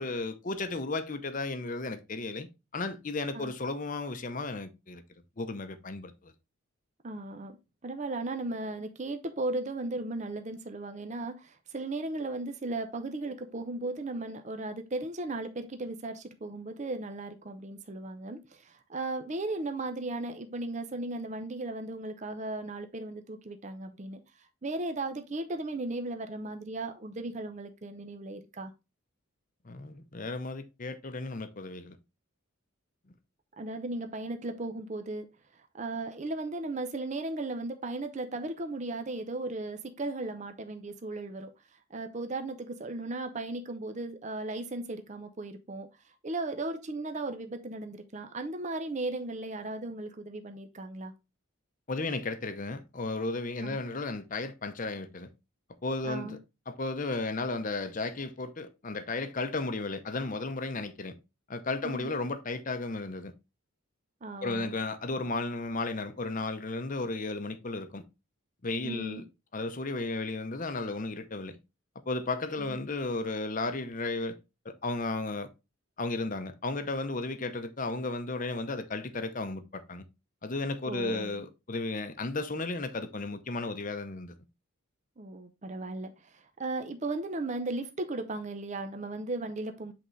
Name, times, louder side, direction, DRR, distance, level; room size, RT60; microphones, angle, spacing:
voice 1, 0.0-2.5 2.7-5.0 5.4-6.3 29.6-32.0 51.9-55.3 55.8-56.4 56.7-61.2 61.5-63.3 64.4-68.0 68.6-69.2 69.5-71.6 72.1-74.4 74.6-75.5 76.0-80.0 80.4-84.3, left 3 dB, 40° left, 0.7 m, -34 dB
voice 2, 7.0-7.6 7.8-28.7 33.6-35.3 35.6-41.5 41.9-45.9 46.2-51.1 53.6-53.8 56.0-56.4 61.8-62.1 64.2-64.7 68.8-69.2 72.6-72.8 80.8-81.4 85.2-89.9, right 2 dB, 35° right, 0.6 m, -36 dB
7.9 x 3.8 x 3.2 m
head